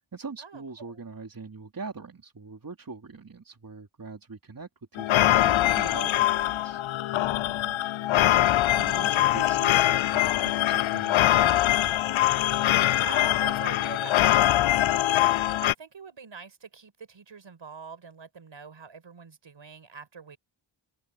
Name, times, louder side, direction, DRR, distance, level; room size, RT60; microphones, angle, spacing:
voice 1, 0.1-6.8 8.1-11.7, right 4 dB, 45° right, 3.2 m, -42 dB
sound 1, 5.0-15.7, left 14 dB, 75° left, 0.5 m, -23 dB
voice 2, 7.5-7.9 12.8-14.9 15.6-20.4, right 6 dB, 65° right, 6.2 m, -44 dB
cardioid pair, 60°, 48 cm